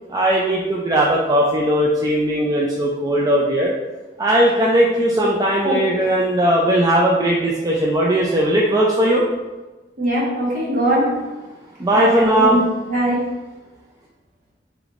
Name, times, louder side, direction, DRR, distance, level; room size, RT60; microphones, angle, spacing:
voice 1, 0.1-3.7 4.2-9.2 11.8-12.6, right 1 dB, 20° right, -3 dB, 0.4 m, -18 dB
voice 2, 5.6-6.0 10.0-11.1 11.9-12.6 12.9-13.2, right 1 dB, 45° right, -5 dB, 1.2 m, -21 dB
5.0 x 3.0 x 2.4 m, 1.2 s
head